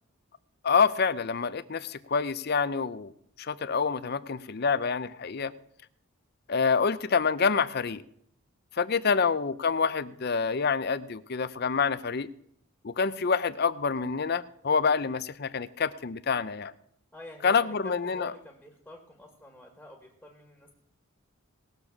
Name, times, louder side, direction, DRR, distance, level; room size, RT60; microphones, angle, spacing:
voice 1, 0.6-3.1 3.4-5.5 6.5-8.0 8.8-12.3 12.8-16.7 17.4-18.3, left 5 dB, 45° left, 14 dB, 0.5 m, -27 dB
voice 2, 17.1-20.7, left 1 dB, ahead, 1 dB, 1.8 m, -48 dB
19.0 x 6.8 x 6.0 m, 0.69 s
head